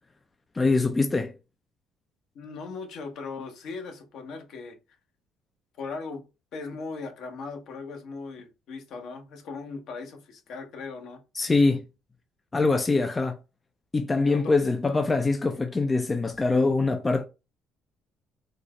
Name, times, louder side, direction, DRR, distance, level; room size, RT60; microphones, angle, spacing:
voice 1, 0.6-1.3 11.4-11.8 12.5-13.4 13.9-17.3, left 3 dB, 20° left, 0.4 m, -23 dB
voice 2, 2.3-4.8 5.8-6.2 6.5-11.2 14.2-14.6, left 4 dB, 65° left, 1.0 m, -38 dB
4.1 x 2.3 x 3.0 m
cardioid pair, 125°, 0 cm